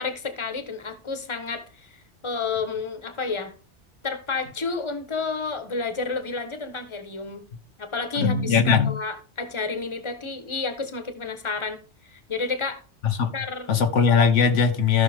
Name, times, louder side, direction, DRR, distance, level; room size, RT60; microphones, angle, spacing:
voice 1, 0.0-3.5 4.0-7.4 7.8-12.8 13.3-13.7, left 4 dB, 25° left, 1.2 m, -31 dB
voice 2, 8.2-9.0 13.2-13.3 13.7-15.0, left 6 dB, 90° left, 1.3 m, -20 dB
14.5 x 6.0 x 3.5 m
omnidirectional pair, 1.2 m